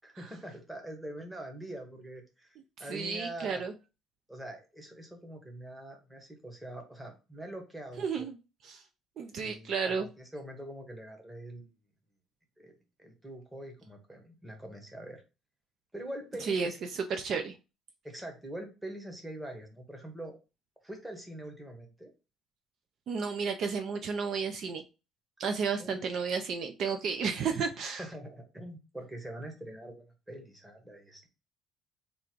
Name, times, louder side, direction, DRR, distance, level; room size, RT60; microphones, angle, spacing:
voice 1, 0.0-3.6 4.3-8.3 9.4-11.7 12.6-15.2 15.9-16.8 18.0-20.4 20.8-22.1 25.8-26.0 28.0-31.3, right 1 dB, 5° right, 1.0 m, -44 dB
voice 2, 2.8-3.7 8.0-8.4 8.6-8.8 9.2-10.1 16.4-17.5 23.1-24.8 25.4-28.0, right 5 dB, 45° right, 0.4 m, -32 dB
3.6 x 2.5 x 4.4 m
cardioid pair, 155°, 0 cm